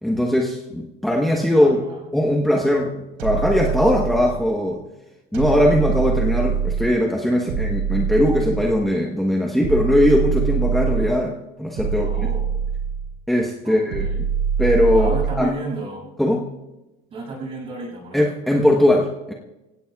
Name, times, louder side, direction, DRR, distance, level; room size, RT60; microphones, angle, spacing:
voice 1, 0.0-1.8 2.1-2.9 3.2-4.8 5.3-12.3 13.3-14.3 14.6-15.1 15.4-15.5 16.2-16.5 18.1-19.3, left 1 dB, ahead, -1 dB, 1.0 m, -20 dB
voice 2, 1.5-2.0 12.0-12.5 13.6-14.3 14.9-16.1 17.1-18.3, right 2 dB, 30° right, -3 dB, 7.1 m, -33 dB
sound 1, 3.2-4.5 5.3-7.0 7.5-8.9 9.6-11.2 11.8-13.2 13.9-15.5, right 6 dB, 90° right, 3.8 m, -24 dB
26.0 x 17.0 x 2.3 m, 1.0 s
cardioid pair, 150°, 18 cm